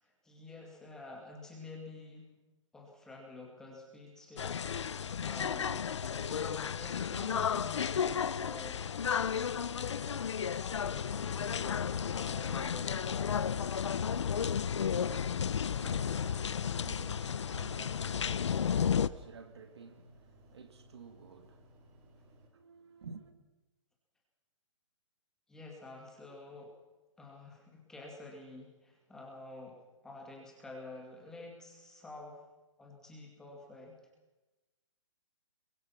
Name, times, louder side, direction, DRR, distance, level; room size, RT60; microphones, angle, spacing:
voice 1, 0.0-2.3 2.7-8.9 9.7-13.4 25.5-26.7 27.2-32.4 32.8-34.0, left 2 dB, 5° left, 2.3 m, -50 dB
sound 1, 4.4-19.1, left 7 dB, 65° left, 0.9 m, -33 dB
sound 2, 14.5-22.5, equal, 15° right, 2.3 m, -61 dB
voice 2, 14.9-23.3, right 5 dB, 55° right, 2.3 m, -53 dB
26.0 x 23.0 x 5.9 m
hypercardioid pair, 175°, 16 cm